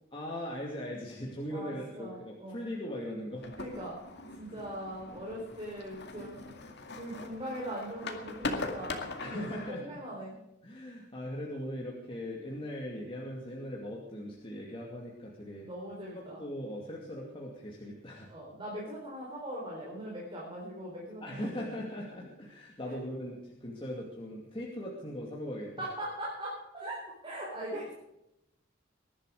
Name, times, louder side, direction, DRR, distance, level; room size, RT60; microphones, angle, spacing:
voice 1, 0.1-3.5 4.2-4.4 5.1-5.4 9.2-10.0 10.6-15.7 16.1-18.3 21.2-25.9, equal, 25° left, -2 dB, 2.5 m, -40 dB
voice 2, 1.5-2.6 3.6-4.0 4.4-6.4 7.0-10.3 15.6-16.4 18.3-21.6 22.8-23.1 25.8-27.9, right 1 dB, 25° right, -5 dB, 4.5 m, -40 dB
sound 1, 3.4-9.7, left 3 dB, 55° left, 2.2 m, -41 dB
21.5 x 11.5 x 5.0 m, 0.86 s
head